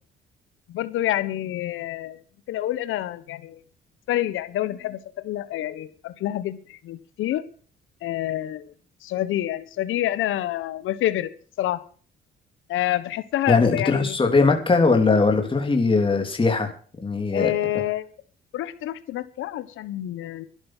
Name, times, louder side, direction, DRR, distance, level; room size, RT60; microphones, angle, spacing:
voice 1, 0.7-2.2 2.5-3.6 4.1-7.4 8.0-8.7 9.0-11.3 11.6-11.8 12.7-14.2 17.3-18.1 18.5-20.5, left 13 dB, 85° left, 13 dB, 1.3 m, -27 dB
voice 2, 13.5-16.7 17.0-17.5, left 4 dB, 25° left, 4 dB, 3.2 m, -20 dB
12.0 x 11.5 x 6.2 m, 0.43 s
cardioid pair, 90°, 20 cm